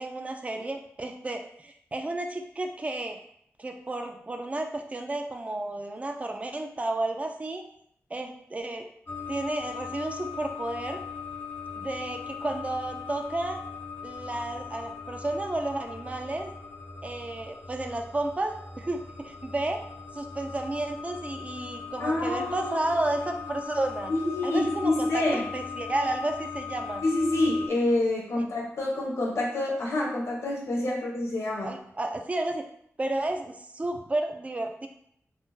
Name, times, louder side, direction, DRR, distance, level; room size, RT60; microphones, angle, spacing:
voice 1, 0.0-3.2 3.6-7.6 8.1-8.9 9.3-11.0 11.8-13.6 14.0-16.5 17.0-19.8 20.1-24.1 24.4-27.0 31.6-32.6 33.0-34.9, right 2 dB, 25° right, 4 dB, 0.3 m, -32 dB
sound 1, 9.1-27.7, left 6 dB, 45° left, 0.6 m, -39 dB
voice 2, 22.0-23.0 24.1-25.5 27.0-31.7, left 2 dB, 80° left, -2 dB, 0.9 m, -27 dB
3.6 x 2.1 x 2.6 m, 0.70 s
wide cardioid pair, 90°, 5 cm